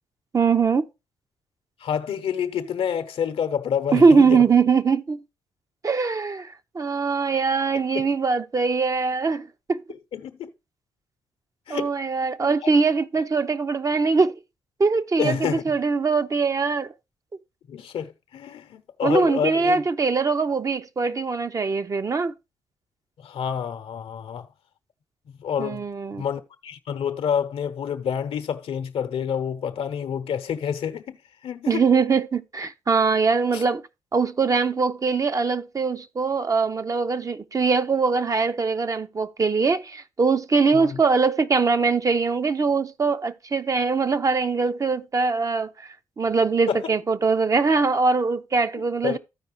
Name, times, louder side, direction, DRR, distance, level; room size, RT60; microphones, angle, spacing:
voice 1, 0.3-0.9 3.9-5.2 5.8-9.8 11.7-14.4 14.8-16.9 19.0-22.3 25.6-26.2 31.7-33.8 34.1-49.2, right 4 dB, 35° right, 0.6 m, -22 dB
voice 2, 1.8-4.4 7.9-8.0 10.1-10.5 11.7-11.9 12.4-12.7 15.2-15.7 17.7-19.8 23.2-24.5 25.4-25.8 26.2-31.2 31.4-31.8 33.5-33.6 40.7-41.0 46.7-46.8 49.0-49.2, left 8 dB, 65° left, 0.8 m, -28 dB
14.0 x 4.7 x 3.0 m
supercardioid pair, 55°, 10 cm